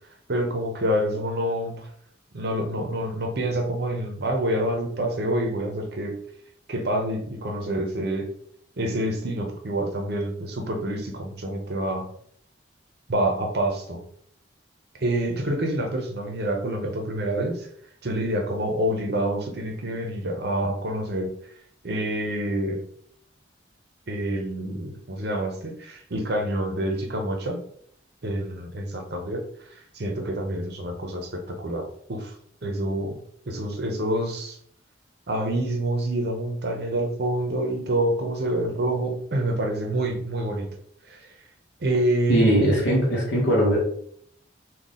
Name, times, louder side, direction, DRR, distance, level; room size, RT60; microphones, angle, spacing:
voice 1, 0.3-1.9 2.3-6.2 6.7-8.3 8.8-12.1 13.1-14.0 15.0-17.7 18.0-21.3 21.8-22.8 24.1-27.6 28.2-29.4 29.9-32.3 32.6-34.6 35.3-40.7 41.1-41.3 41.8-42.7, right 1 dB, 55° right, 2 dB, 0.7 m, -27 dB
voice 2, 42.3-43.8, equal, 60° left, -5 dB, 1.1 m, -20 dB
4.0 x 2.3 x 3.6 m, 0.64 s
head